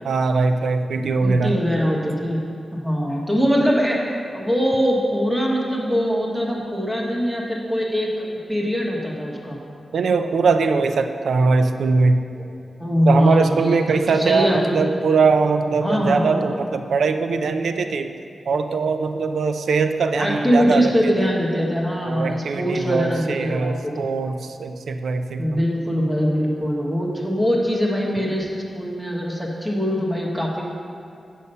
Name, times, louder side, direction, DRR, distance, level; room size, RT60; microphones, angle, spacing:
voice 1, 0.0-1.6 9.9-12.2 13.1-18.1 18.5-21.1 22.0-25.6, right 4 dB, 85° right, 8 dB, 0.4 m, -21 dB
voice 2, 1.2-4.0 4.3-9.6 12.8-13.8 14.1-14.8 15.8-16.4 20.2-24.1 25.4-30.6, equal, 5° right, -2 dB, 1.3 m, -22 dB
8.3 x 5.5 x 5.5 m, 2.5 s
wide cardioid pair, 125°, 0 cm